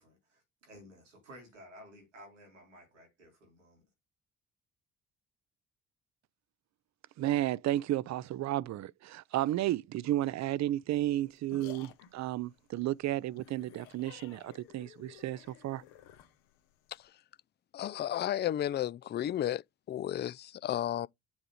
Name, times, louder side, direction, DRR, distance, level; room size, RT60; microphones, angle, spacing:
voice 1, 0.0-3.8, equal, 85° right, 3.8 m, -54 dB
voice 2, 7.2-15.8, right 14 dB, 50° right, 0.6 m, -33 dB
sound 1, 11.0-17.1, left 11 dB, 75° left, 1.4 m, -54 dB
voice 3, 17.7-19.6 19.9-21.1, left 11 dB, 30° left, 0.4 m, -33 dB
7.1 x 3.7 x 4.8 m
hypercardioid pair, 45°, 36 cm